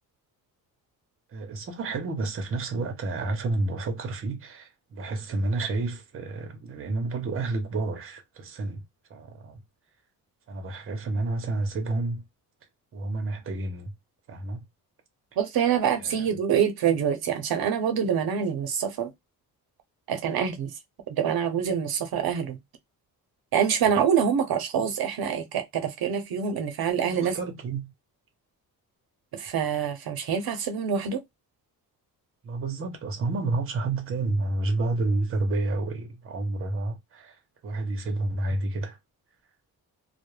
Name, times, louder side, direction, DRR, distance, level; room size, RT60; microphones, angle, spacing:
voice 1, 1.3-8.8 9.1-9.6 10.5-12.2 12.9-13.9 14.3-14.6 16.0-16.3 27.0-27.9 32.4-39.0, right 2 dB, 35° right, 0.6 m, -30 dB
voice 2, 15.4-19.1 20.1-20.7 21.1-22.6 23.5-27.3 29.3-31.2, right 8 dB, 75° right, 0.6 m, -26 dB
2.2 x 2.1 x 3.0 m
wide cardioid pair, 170°, 37 cm